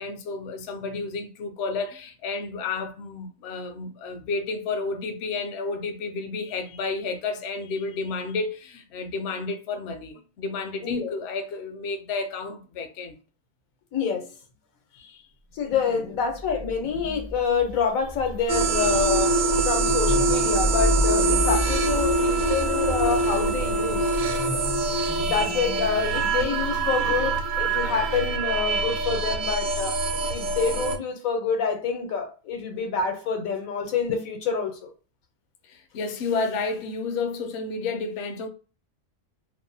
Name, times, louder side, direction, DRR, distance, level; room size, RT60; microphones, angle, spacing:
voice 1, 0.0-13.2 14.9-15.2 15.9-16.0 35.7-38.5, left 4 dB, 65° left, 0.7 m, -31 dB
voice 2, 13.9-14.3 15.5-19.3 19.6-24.1 25.2-30.0 30.3-34.9, left 6 dB, 85° left, 1.1 m, -27 dB
sound 1, 16.3-28.4, equal, ahead, 0.4 m, -33 dB
sound 2, 18.5-31.0, right 3 dB, 75° right, 0.9 m, -24 dB
2.6 x 2.1 x 2.6 m
omnidirectional pair, 1.4 m